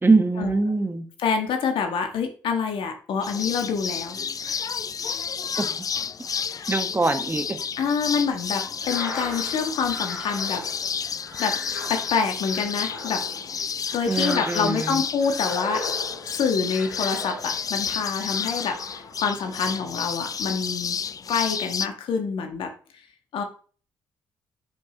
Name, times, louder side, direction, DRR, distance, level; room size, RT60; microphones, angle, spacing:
voice 1, 0.0-1.1 5.6-5.9 6.7-7.6 14.1-15.0, right 3 dB, 25° right, 8 dB, 1.2 m, -23 dB
voice 2, 1.2-4.2 4.4-4.6 6.5-6.7 7.8-10.6 11.4-11.6 11.9-13.6 13.9-15.8 16.3-21.0 21.3-23.0 23.3-23.4, left 5 dB, 65° left, 5 dB, 1.5 m, -27 dB
sound 1, 3.2-21.9, left 6 dB, 40° left, 0.4 m, -31 dB
sound 2, 8.7-17.8 18.2-19.3, left 3 dB, 90° left, 1.8 m, -38 dB
9.9 x 5.2 x 3.0 m, 0.41 s
hypercardioid pair, 45°, 10 cm